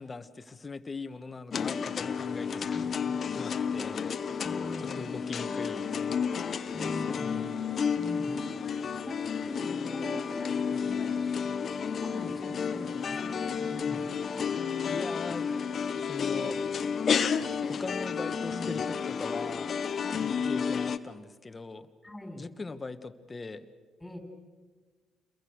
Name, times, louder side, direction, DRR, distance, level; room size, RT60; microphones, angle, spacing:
voice 1, 0.0-2.8 3.2-4.1 4.8-6.0 6.9-7.6 14.9-15.5 16.0-16.6 17.7-19.7 20.4-21.9 22.4-23.6, left 3 dB, 25° left, 10 dB, 1.4 m, -40 dB
sound 1, 1.5-21.0, left 6 dB, 50° left, 1.1 m, -31 dB
voice 2, 2.7-3.1 4.4-5.1 6.7-7.3 8.0-8.3 9.0-9.2 9.5-11.5 12.0-14.5 18.5-18.7 20.0-20.3 22.0-22.4 24.0-24.2, left 1 dB, 10° left, 5 dB, 5.3 m, -42 dB
sound 2, 5.8-14.7, right 4 dB, 75° right, 3.4 m, -58 dB
29.0 x 22.0 x 6.5 m, 1.4 s
cardioid pair, 85°, 0 cm